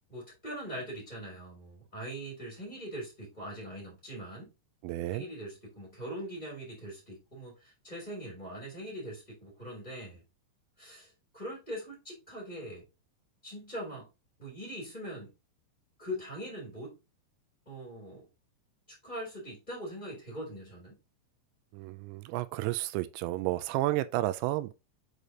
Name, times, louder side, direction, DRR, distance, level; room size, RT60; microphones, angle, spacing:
voice 1, 0.1-4.5 5.1-10.2 10.8-12.8 13.4-14.1 14.4-15.3 16.0-17.0 17.7-18.2 19.0-21.0, equal, 10° left, 2.1 m, -42 dB
voice 2, 4.8-5.3 21.7-24.7, right 16 dB, 85° right, 2.7 m, -31 dB
6.6 x 5.3 x 2.8 m
omnidirectional pair, 5.4 m